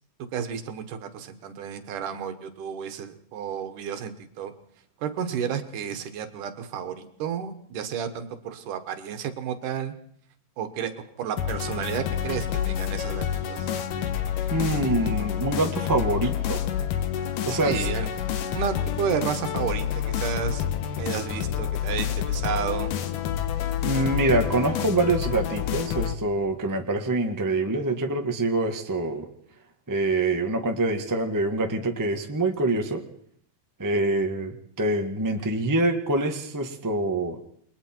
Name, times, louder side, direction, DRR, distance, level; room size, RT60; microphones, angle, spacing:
voice 1, 0.3-4.5 5.0-9.9 10.6-10.9 11.2-13.7 17.5-18.1 18.5-20.6 21.0-22.9, right 8 dB, 70° right, 8 dB, 2.8 m, -31 dB
sound 1, 11.4-26.2, left 10 dB, 75° left, 2.6 m, -28 dB
voice 2, 14.5-16.6 17.5-17.9 23.8-29.2 29.9-33.0 33.8-37.4, right 2 dB, 30° right, 4 dB, 0.3 m, -25 dB
29.0 x 21.5 x 4.6 m, 0.64 s
omnidirectional pair, 3.9 m